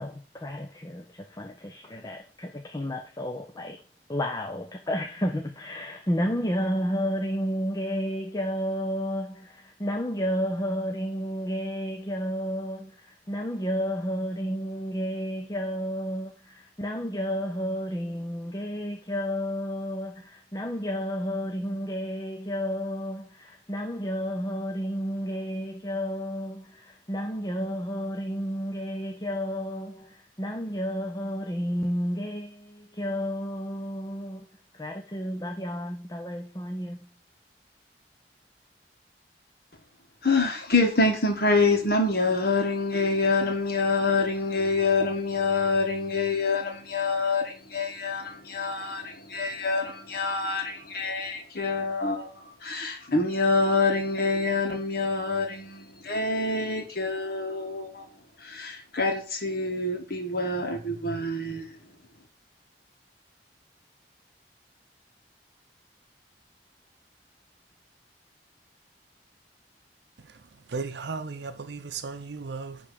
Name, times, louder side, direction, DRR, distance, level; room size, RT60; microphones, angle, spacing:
voice 1, 0.0-3.8 4.1-34.5 34.7-37.0, equal, 20° left, 0.7 m, -31 dB
voice 2, 40.2-52.3 52.6-58.1 58.4-61.8, left 3 dB, 60° left, 1.9 m, -26 dB
voice 3, 70.7-72.8, right 4 dB, 75° right, 0.6 m, -35 dB
10.0 x 3.5 x 5.0 m
head